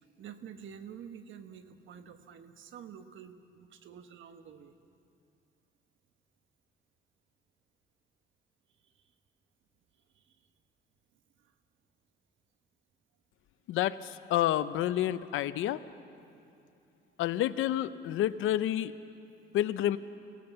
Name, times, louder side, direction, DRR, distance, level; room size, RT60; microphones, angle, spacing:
voice 1, 0.0-4.8 8.8-9.1 10.1-10.5 11.1-11.5, right 8 dB, 75° right, 8 dB, 1.3 m, -49 dB
voice 2, 13.7-15.8 17.2-18.9 19.5-20.0, left 12 dB, 90° left, 14 dB, 0.7 m, -29 dB
24.5 x 17.5 x 6.9 m, 2.6 s
cardioid pair, 90°, 20 cm